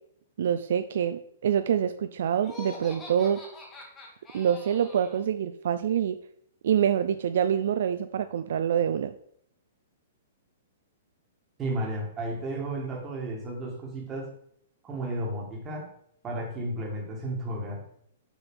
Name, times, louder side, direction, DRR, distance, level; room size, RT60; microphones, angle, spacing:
voice 1, 0.4-3.4 4.3-6.2 6.6-9.1, right 9 dB, 55° right, 10 dB, 0.4 m, -26 dB
Laughter, 2.4-5.2, left 2 dB, 10° left, 1.2 m, -45 dB
voice 2, 11.6-14.3 14.8-15.9 16.2-17.8, right 1 dB, 10° right, 0 dB, 1.6 m, -33 dB
7.0 x 5.4 x 6.1 m, 0.68 s
hypercardioid pair, 180°, 0 cm